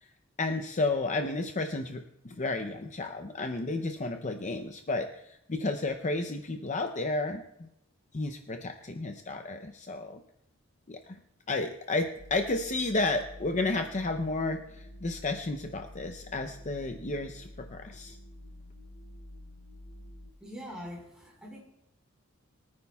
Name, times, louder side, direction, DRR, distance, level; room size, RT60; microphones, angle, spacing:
voice 1, 0.4-7.7 8.1-10.2 10.9-11.2 11.5-18.2, left 2 dB, 35° left, 5 dB, 0.6 m, -32 dB
sound 1, 12.2-20.3, left 1 dB, 60° left, 1.0 m, -49 dB
voice 2, 20.4-21.6, equal, 5° right, -3 dB, 4.6 m, -43 dB
23.5 x 9.7 x 2.3 m, 0.82 s
head